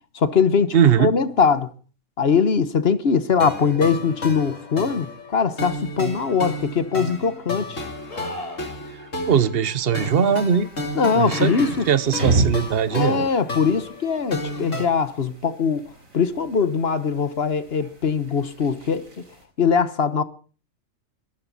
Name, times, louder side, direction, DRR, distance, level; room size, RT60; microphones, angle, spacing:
voice 1, 0.1-1.7 2.2-5.1 5.3-7.8 10.9-11.8 12.9-15.8 16.1-19.0 19.6-20.2, left 5 dB, 50° left, 1.3 m, -21 dB
voice 2, 0.7-1.1 9.3-10.7 11.1-13.3, right 8 dB, 50° right, 1.1 m, -20 dB
sound 1, 3.4-14.9, left 1 dB, 70° left, 3.1 m, -32 dB
sound 2, 8.1-8.8 9.8-10.1 11.2-11.9 12.9-13.1 14.3-15.0 18.2-18.3, left 2 dB, 25° left, 2.3 m, -37 dB
sound 3, 10.2-19.5, right 3 dB, 85° right, 4.4 m, -32 dB
22.5 x 13.5 x 4.1 m
omnidirectional pair, 1.4 m